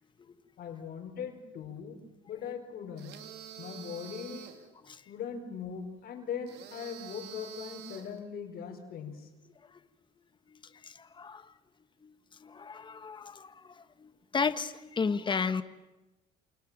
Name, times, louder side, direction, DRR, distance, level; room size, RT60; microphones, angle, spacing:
voice 1, 0.6-3.2 3.6-4.5 5.1-9.3, left 7 dB, 65° left, 3 dB, 4.7 m, -40 dB
sound 1, 3.0-4.7 6.5-8.2, right 9 dB, 75° right, 3.1 m, -47 dB
voice 2, 10.5-11.5 12.0-12.1 12.4-15.6, left 5 dB, 30° left, 11 dB, 1.5 m, -34 dB
28.5 x 28.0 x 7.4 m, 1.0 s
cardioid pair, 110°, 17 cm